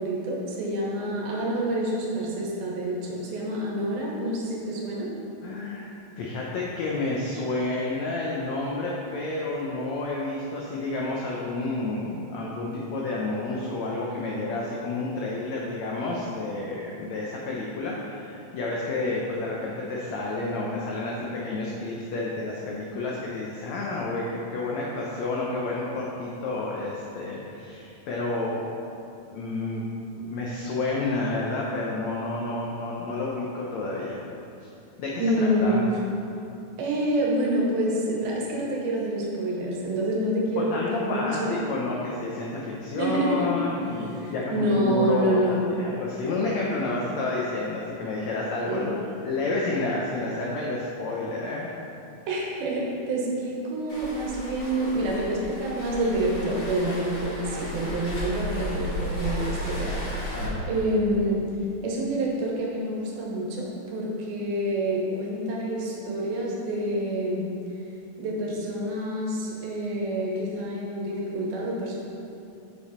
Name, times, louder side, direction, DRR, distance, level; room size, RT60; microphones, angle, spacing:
voice 1, 0.0-5.1 35.2-35.8 36.8-41.6 43.0-43.5 44.2-45.6 48.7-48.9 52.3-60.0 60.2-60.4 60.7-61.4 61.8-67.4 68.2-72.0, right 1 dB, 80° right, -3 dB, 3.0 m, -27 dB
voice 2, 5.4-5.9 6.2-24.3 24.5-28.6 29.3-29.8 30.2-34.2 35.0-35.8 40.5-48.9 49.2-51.7 60.3-60.7, left 2 dB, 90° left, -4 dB, 1.5 m, -30 dB
Waves surf, 53.9-60.5, left 1 dB, 50° left, 2.9 m, -34 dB
7.2 x 7.0 x 4.2 m, 2.7 s
omnidirectional pair, 4.2 m